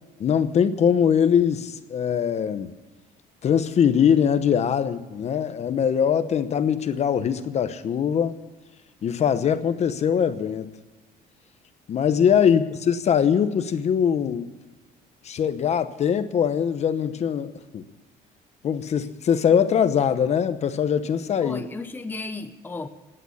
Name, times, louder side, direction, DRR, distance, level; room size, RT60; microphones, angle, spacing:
voice 1, 0.2-2.7 3.4-8.4 9.0-10.7 11.9-14.5 15.2-17.8 18.6-21.6, left 8 dB, 40° left, 11 dB, 0.9 m, -22 dB
voice 2, 21.4-22.9, left 3 dB, 10° left, 8 dB, 0.8 m, -34 dB
18.0 x 9.0 x 8.4 m, 1.2 s
cardioid pair, 145°, 16 cm